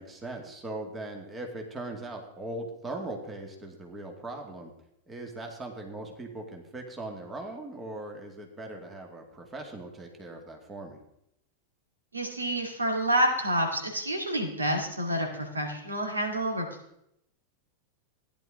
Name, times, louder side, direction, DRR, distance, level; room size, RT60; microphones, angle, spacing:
voice 1, 0.0-4.7 5.1-11.0, right 2 dB, 15° right, 2 dB, 2.2 m, -39 dB
voice 2, 12.1-16.7, right 1 dB, 75° right, 2 dB, 2.3 m, -28 dB
15.0 x 10.5 x 3.8 m, 0.77 s
figure-of-eight pair, 90°, 0 cm